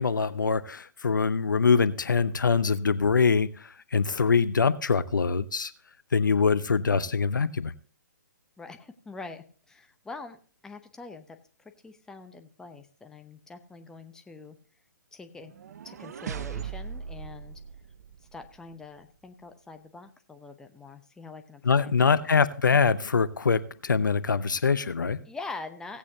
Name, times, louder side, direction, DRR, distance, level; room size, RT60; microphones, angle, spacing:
voice 1, 0.0-5.7 6.1-7.7 21.6-25.2, left 5 dB, 80° left, 15 dB, 0.7 m, -24 dB
voice 2, 8.6-14.6 15.1-15.5 15.8-17.6 18.3-22.2 25.2-26.0, left 3 dB, 5° left, 7 dB, 0.7 m, -44 dB
sound 1, 15.4-18.6, right 7 dB, 55° right, 0.6 m, -39 dB
17.0 x 8.4 x 2.8 m, 0.41 s
figure-of-eight pair, 135°, 10 cm